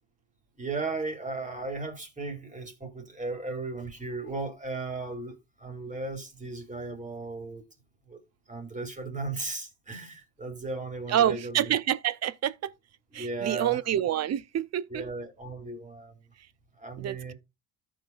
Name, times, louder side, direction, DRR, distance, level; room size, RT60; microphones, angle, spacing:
voice 1, 0.6-7.6 8.1-8.2 8.5-11.7 13.2-13.8 14.9-16.2 16.8-17.3, right 3 dB, 15° right, 2.4 m, -36 dB
voice 2, 11.1-12.7 13.1-15.0 17.0-17.3, right 11 dB, 35° right, 0.5 m, -27 dB
14.0 x 4.9 x 2.3 m
supercardioid pair, 75°, 45 cm